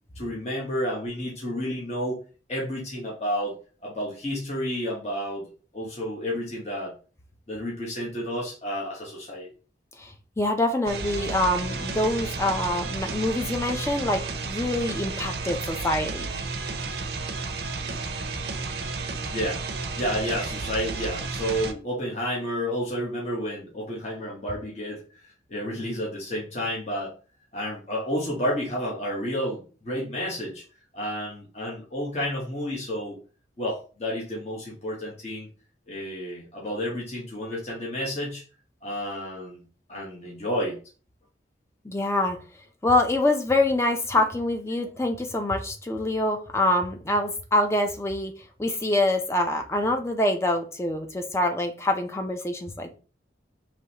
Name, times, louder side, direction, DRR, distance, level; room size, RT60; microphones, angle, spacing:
voice 1, 0.1-2.2 2.5-3.6 3.8-5.5 5.7-6.9 7.5-9.5 19.2-19.6 19.9-25.0 25.5-27.1 27.5-30.6 30.9-33.2 33.6-35.5 35.9-38.4 38.8-40.8, equal, 35° left, 1.1 m, -31 dB
voice 2, 10.0-16.3 41.8-42.4 42.8-48.3 48.6-53.0, left 1 dB, 15° left, 0.5 m, -25 dB
sound 1, 10.9-21.7, right 4 dB, 60° right, 0.5 m, -32 dB
5.0 x 3.1 x 2.9 m
head